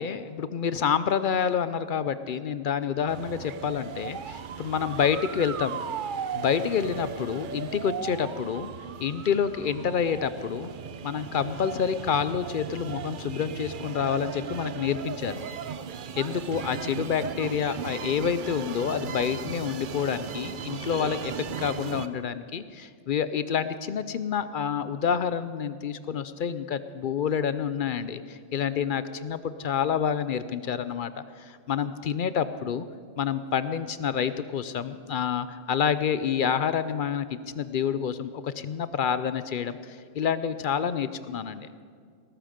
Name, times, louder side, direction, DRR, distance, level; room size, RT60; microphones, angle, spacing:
voice 1, 0.0-5.8 6.3-8.7 9.0-10.7 11.0-15.4 16.2-32.8 33.2-37.3 37.6-41.7, left 7 dB, 60° left, 13 dB, 0.6 m, -28 dB
sound 1, 3.1-22.1, right 8 dB, 55° right, 0.6 m, -37 dB
19.0 x 14.0 x 5.1 m, 2.1 s
omnidirectional pair, 1.3 m